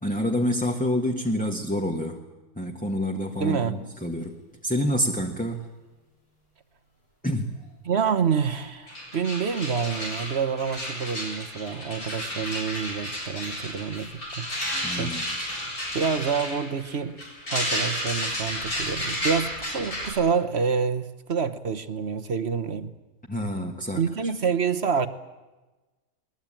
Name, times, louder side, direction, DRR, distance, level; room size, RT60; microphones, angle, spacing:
voice 1, 0.0-2.2 2.6-4.3 4.6-5.6 7.2-7.6 14.8-15.3 23.3-24.3, equal, 5° left, 1.6 m, -27 dB
voice 2, 3.4-3.8 7.8-14.5 14.9-15.1 15.9-17.2 17.5-22.9 23.9-25.1, right 6 dB, 50° right, 1.3 m, -27 dB
sound 1, 8.6-8.7 8.9-20.1, equal, 70° left, 8.0 m, -32 dB
22.0 x 21.0 x 9.0 m
omnidirectional pair, 1.6 m